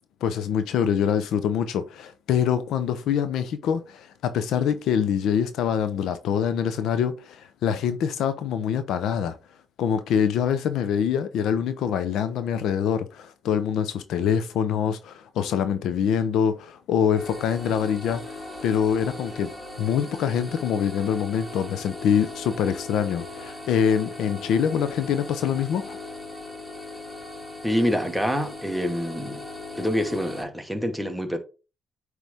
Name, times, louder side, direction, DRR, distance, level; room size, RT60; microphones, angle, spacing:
voice 1, 0.2-9.4 9.8-18.2 18.6-19.5 19.8-26.0, left 8 dB, 80° left, 0.7 m, -25 dB
sound 1, 17.1-30.4, left 2 dB, 15° left, 3.1 m, -38 dB
voice 2, 27.6-29.4 29.8-31.4, equal, ahead, 1.2 m, -26 dB
9.1 x 3.3 x 3.5 m
cardioid pair, 90°, 0 cm